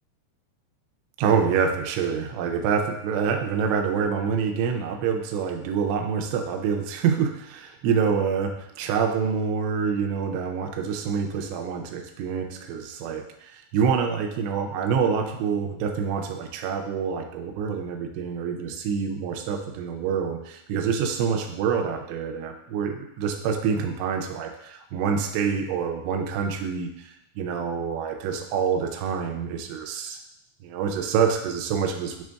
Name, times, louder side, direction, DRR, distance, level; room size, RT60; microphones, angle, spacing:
voice 1, 1.2-30.2 30.6-32.2, right 6 dB, 85° right, 4 dB, 2.6 m, -26 dB
7.3 x 3.1 x 2.2 m, 0.79 s
omnidirectional pair, 5.2 m